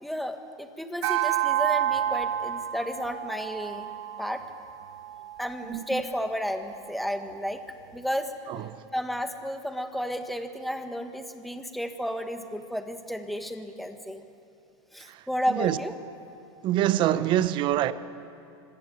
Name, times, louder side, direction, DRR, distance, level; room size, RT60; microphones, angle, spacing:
voice 1, 0.0-3.9 4.2-4.4 5.4-7.6 7.9-8.3 8.9-14.2 14.9-15.9, equal, ahead, 1.4 m, -32 dB
sound 1, 1.0-5.6, right 12 dB, 60° right, 1.0 m, -29 dB
voice 2, 5.6-6.0 8.5-8.8 15.0-15.8 16.6-17.9, right 13 dB, 35° right, 0.8 m, -26 dB
25.5 x 17.5 x 8.4 m
supercardioid pair, 150°, 15 cm